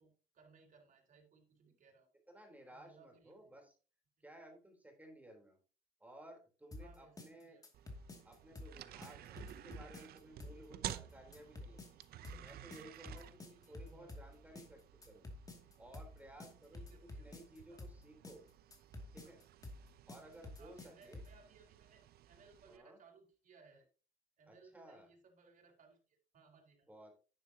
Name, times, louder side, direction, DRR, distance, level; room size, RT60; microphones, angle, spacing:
voice 1, 0.0-2.1 2.7-3.5 4.2-4.3 6.7-7.7 13.4-14.4 16.7-17.9 20.6-23.9 24.4-26.9, right 4 dB, 50° right, 1 dB, 4.2 m, -65 dB
voice 2, 2.3-3.7 4.2-5.6 6.0-7.6 8.2-11.9 12.3-15.3 15.8-18.4 19.1-19.4 20.1-21.2 22.7-23.0 24.5-25.1 26.8-27.1, right 1 dB, 10° right, 2 dB, 3.7 m, -57 dB
sound 1, 6.7-21.4, left 2 dB, 20° left, 2.5 m, -51 dB
sound 2, 7.7-22.8, right 12 dB, 65° right, 0.8 m, -53 dB
10.5 x 10.0 x 2.9 m, 0.36 s
cardioid pair, 110°, 17 cm